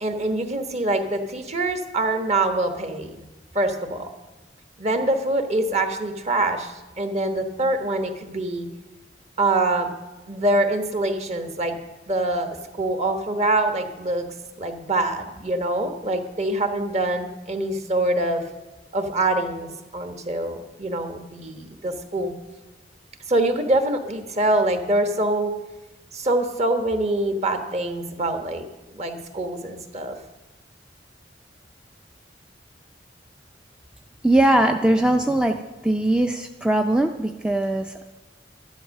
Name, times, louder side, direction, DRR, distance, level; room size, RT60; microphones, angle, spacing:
voice 1, 0.0-3.2 3.5-4.1 4.8-8.7 9.4-9.9 10.3-11.8 12.1-14.3 14.6-18.4 18.9-22.3 23.3-25.5 26.1-30.2, right 2 dB, 40° right, 6 dB, 1.2 m, -24 dB
voice 2, 34.2-35.6 35.8-38.0, right 1 dB, 5° right, 4 dB, 0.4 m, -20 dB
11.5 x 11.0 x 6.5 m, 1.1 s
head